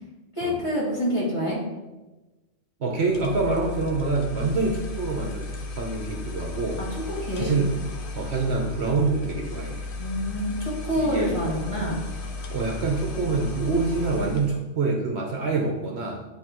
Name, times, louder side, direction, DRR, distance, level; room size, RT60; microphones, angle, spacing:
voice 1, 0.4-1.6 6.9-7.5 10.0-12.0, equal, 25° left, -7 dB, 2.2 m, -27 dB
voice 2, 2.8-6.8 7.3-7.8 8.1-9.9 10.9-11.3 12.5-16.3, right 3 dB, 60° right, 0 dB, 1.0 m, -26 dB
sound 1, 3.1-14.6, left 3 dB, 50° left, 0.8 m, -35 dB
10.0 x 3.6 x 3.0 m, 1.1 s
omnidirectional pair, 1.3 m